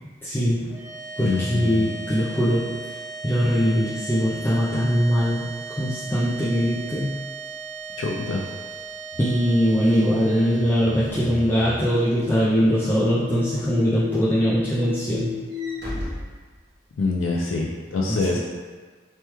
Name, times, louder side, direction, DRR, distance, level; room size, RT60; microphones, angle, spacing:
voice 1, 0.2-0.8 1.2-2.9 3.2-7.1 9.2-15.3 18.1-18.4, equal, 10° left, -11 dB, 0.3 m, -22 dB
sound 1, 0.7-15.1, right 4 dB, 20° right, 0.8 m, -38 dB
voice 2, 1.2-1.9 8.0-8.4 17.0-18.4, left 3 dB, 90° left, -2 dB, 0.4 m, -25 dB
Walk footsteps / Slam, 7.3-13.1 13.6-13.8 14.2-17.2, equal, 55° right, 0.8 m, -41 dB
sound 2, 10.0-15.9, left 5 dB, 80° right, 0.5 m, -34 dB
3.2 x 2.2 x 2.9 m, 1.5 s
head